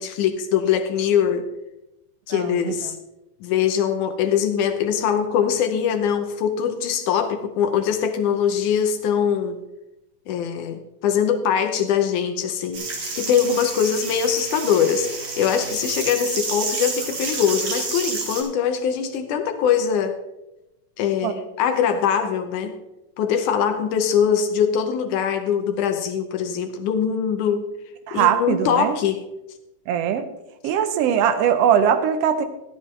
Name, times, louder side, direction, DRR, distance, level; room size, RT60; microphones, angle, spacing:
voice 1, 0.0-1.5 2.3-3.0 3.4-9.6 10.3-15.1 15.4-20.1 21.0-22.7 23.2-27.7 28.1-29.2, left 8 dB, 80° left, 6 dB, 2.2 m, -22 dB
voice 2, 2.3-2.7 21.2-21.3 28.1-29.0 29.9-30.2 30.6-32.4, right 9 dB, 80° right, 10 dB, 1.5 m, -20 dB
sound 1, 12.7-18.4, right 3 dB, 45° right, 2.3 m, -29 dB
12.5 x 12.5 x 3.2 m, 0.95 s
omnidirectional pair, 3.6 m